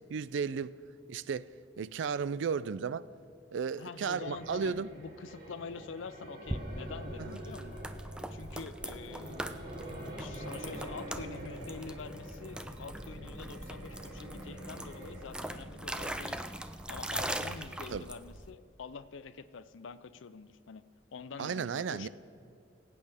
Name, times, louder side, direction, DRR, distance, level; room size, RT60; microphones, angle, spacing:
voice 1, 0.1-0.7 1.1-1.5 1.8-3.1 3.5-4.9 7.2-7.3 17.9-18.1 21.4-22.1, right 6 dB, 75° right, 0.4 m, -34 dB
voice 2, 3.8-7.8 8.3-9.5 10.2-16.5 16.9-20.8 21.1-22.1, left 5 dB, 85° left, 0.5 m, -46 dB
sound 1, 4.2-15.3, right 1 dB, 50° right, 2.8 m, -46 dB
sound 2, 6.5-18.5, right 1 dB, 5° right, 0.3 m, -41 dB
23.5 x 8.6 x 3.5 m
head